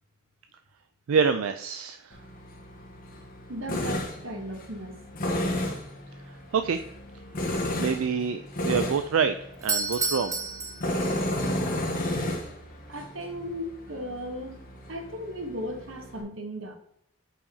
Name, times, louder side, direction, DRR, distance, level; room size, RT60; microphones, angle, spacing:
voice 1, 1.1-2.2 6.5-6.8 7.8-9.4 9.6-10.4, right 6 dB, 90° right, 9 dB, 0.4 m, -26 dB
Tools, 2.1-16.2, left 1 dB, 45° left, 1.3 m, -33 dB
voice 2, 3.5-5.0 12.9-14.6 14.9-16.8, equal, 70° right, 4 dB, 1.2 m, -36 dB
Doorbell, 9.5-11.5, right 3 dB, 15° right, 0.7 m, -31 dB
8.3 x 4.9 x 2.8 m, 0.77 s
head